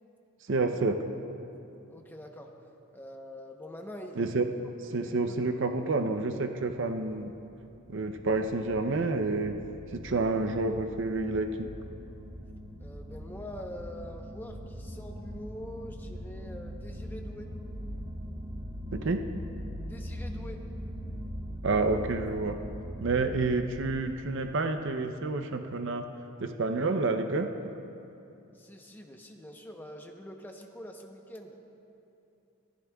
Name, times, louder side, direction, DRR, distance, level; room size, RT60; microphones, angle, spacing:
voice 1, 0.5-1.0 4.2-4.4 4.9-7.3 7.9-9.6 9.9-11.7 18.9-19.2 21.6-22.6 23.0-26.1 26.4-27.5, right 3 dB, 55° right, 6 dB, 0.6 m, -29 dB
voice 2, 1.9-2.5 2.9-4.4 4.9-5.4 12.8-17.5 19.8-20.7 28.5-31.6, equal, 10° left, 2 dB, 0.8 m, -45 dB
sound 1, 6.9-24.1, equal, 20° right, 0.9 m, -41 dB
22.5 x 14.5 x 2.3 m, 2.8 s
head